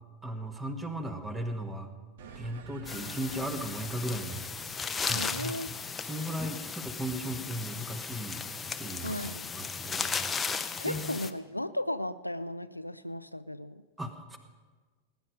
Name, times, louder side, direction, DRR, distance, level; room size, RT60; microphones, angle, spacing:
voice 1, 0.2-1.9 2.3-4.4 5.0-5.6 6.0-8.4 8.8-9.2 9.5-10.2 10.8-11.2 14.0-14.4, right 1 dB, 10° right, 7 dB, 1.5 m, -36 dB
sound 1, 2.2-6.9, right 6 dB, 55° right, 1.2 m, -51 dB
sound 2, 2.8-11.3, left 5 dB, 15° left, 0.8 m, -36 dB
voice 2, 5.1-5.7 9.0-9.5 10.6-13.8, left 1 dB, 85° left, 14 dB, 0.4 m, -36 dB
19.0 x 10.0 x 5.3 m, 1.4 s
figure-of-eight pair, 90°, 0 cm